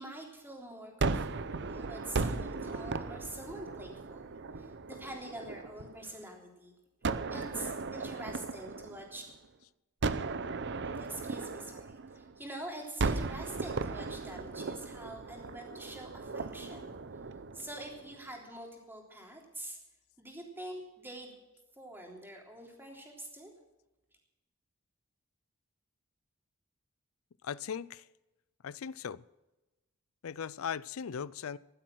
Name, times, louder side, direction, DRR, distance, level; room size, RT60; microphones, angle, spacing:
voice 1, 0.0-6.7 7.3-9.2 10.8-16.9 17.5-19.8 20.2-21.3 21.8-23.5, right 1 dB, 10° right, 0 dB, 3.5 m, -46 dB
Gunshot gunfire, 1.0-6.1 7.0-9.5 10.0-12.5 13.0-18.2, right 3 dB, 55° right, 0.7 m, -37 dB
voice 2, 27.4-28.1 28.6-29.2 30.2-31.6, left 7 dB, 75° left, 20 dB, 0.5 m, -38 dB
16.0 x 11.5 x 6.3 m, 1.0 s
head